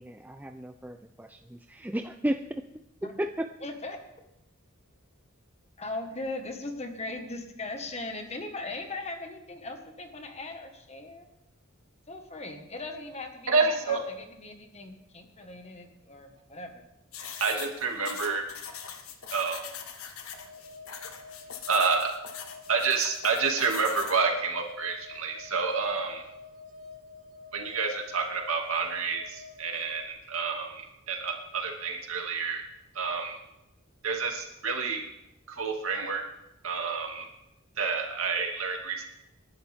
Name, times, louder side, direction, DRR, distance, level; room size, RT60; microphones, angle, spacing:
voice 1, 0.0-2.6 3.0-3.5, right 1 dB, 10° right, 6 dB, 0.5 m, -34 dB
voice 2, 3.6-4.0 5.8-11.3 12.1-16.8, left 2 dB, 30° left, 4 dB, 1.7 m, -39 dB
voice 3, 13.5-14.0 17.4-18.4 19.3-19.6 21.7-22.1 22.7-26.2 27.5-32.6 32.9-33.4 34.0-35.0 35.5-36.2 36.6-37.3 37.8-39.0, right 4 dB, 75° right, 1 dB, 2.5 m, -29 dB
sound 1, 17.1-24.2, left 7 dB, 80° left, 1.6 m, -42 dB
sound 2, 20.3-30.1, left 4 dB, 40° right, 6.9 m, -48 dB
27.0 x 11.5 x 3.6 m, 0.89 s
head